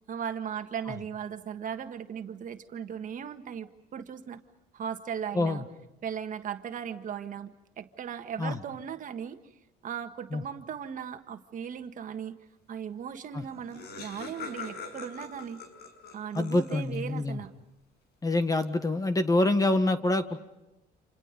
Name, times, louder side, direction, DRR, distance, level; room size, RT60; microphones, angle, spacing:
voice 1, 0.1-4.4 4.7-5.6 6.0-9.4 9.8-12.4 12.7-15.6 16.1-17.5, right 8 dB, 50° right, 7 dB, 1.6 m, -37 dB
voice 2, 5.3-5.7 8.4-8.6 10.3-10.4 13.3-13.4 16.3-17.4 18.2-20.4, left 2 dB, 20° left, 10 dB, 1.7 m, -26 dB
Laughter, 13.1-13.2 13.4-17.1, left 4 dB, 70° left, 6.6 m, -43 dB
29.0 x 27.5 x 5.2 m, 0.95 s
cardioid pair, 110°, 17 cm